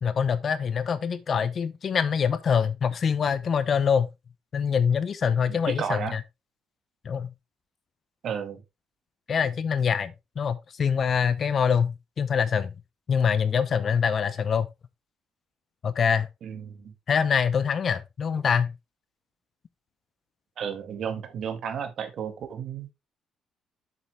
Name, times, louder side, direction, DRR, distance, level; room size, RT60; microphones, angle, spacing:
voice 1, 0.0-4.1 4.5-6.2 7.0-7.3 9.3-12.7 13.1-14.7 15.8-16.3 17.1-18.7, left 7 dB, 40° left, 0.8 m, -24 dB
voice 2, 5.5-6.2 8.2-8.6 16.4-16.9 20.6-22.9, right 7 dB, 55° right, 1.6 m, -33 dB
8.0 x 7.3 x 3.3 m
cardioid pair, 135°, 0 cm